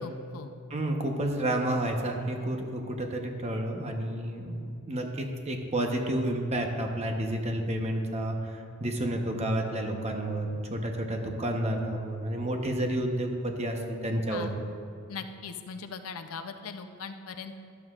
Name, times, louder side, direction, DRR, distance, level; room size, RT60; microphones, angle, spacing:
voice 1, 0.0-0.5 14.3-14.6 15.1-17.5, left 5 dB, 80° left, 8 dB, 0.6 m, -40 dB
voice 2, 0.7-14.5, right 1 dB, 30° right, 3 dB, 0.9 m, -30 dB
12.5 x 12.0 x 2.4 m, 2.4 s
head